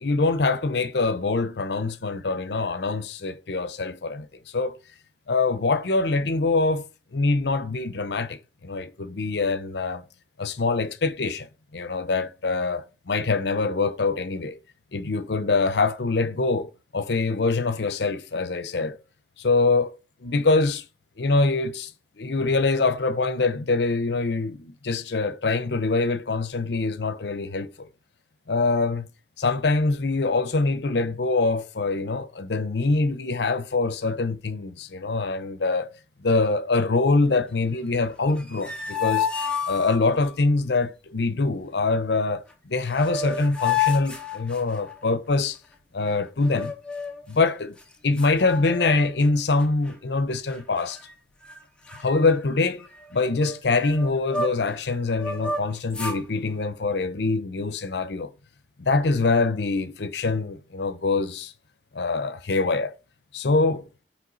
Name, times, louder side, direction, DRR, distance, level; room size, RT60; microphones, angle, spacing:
voice 1, 0.0-4.3 4.5-4.8 5.3-6.8 7.1-10.0 10.4-11.5 11.7-14.6 14.9-19.0 19.4-19.9 20.2-20.8 21.2-21.9 22.2-27.9 28.5-29.1 29.4-35.9 36.2-39.3 39.7-45.6 45.9-46.7 47.3-47.7 48.0-51.0 52.0-52.8 53.1-58.3 58.8-61.5 61.9-62.9 63.3-63.9, left 3 dB, 70° left, 0.7 m, -24 dB
sound 1, 38.3-40.3 42.5-42.6 42.9-45.1 46.4-47.2 47.8-47.9 48.2-49.3 49.6-49.9 50.5-51.1 51.4-51.6 51.9-54.8 55.1-56.2, left 6 dB, 5° left, 0.9 m, -30 dB
7.9 x 3.2 x 4.0 m
head